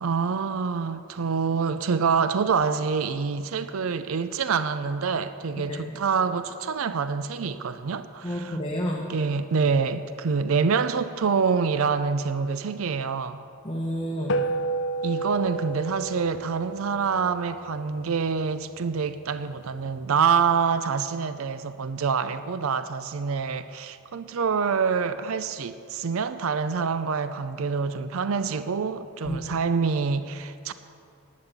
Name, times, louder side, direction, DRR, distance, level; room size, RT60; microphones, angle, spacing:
voice 1, 0.0-8.6 9.1-13.4 15.0-30.7, right 5 dB, 75° right, 0.5 m, -26 dB
voice 2, 8.2-9.1 13.6-14.4 29.2-29.4, equal, 25° left, 1.0 m, -30 dB
sound 1, 14.3-18.9, right 2 dB, 55° left, 0.6 m, -31 dB
11.5 x 9.6 x 7.3 m
head